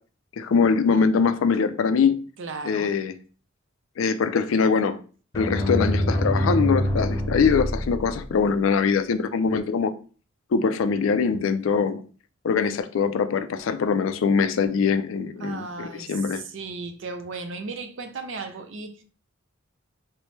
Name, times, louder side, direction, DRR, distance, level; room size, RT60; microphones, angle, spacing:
voice 1, 0.4-2.2 2.6-3.1 4.0-5.0 5.3-9.9 10.5-12.0 12.4-16.4, left 5 dB, 75° left, 0.4 m, -23 dB
voice 2, 2.4-3.0 15.4-19.0, right 4 dB, 65° right, 0.6 m, -36 dB
sound 1, 5.3-8.5, left 1 dB, 15° left, 0.8 m, -25 dB
4.3 x 2.1 x 3.2 m
head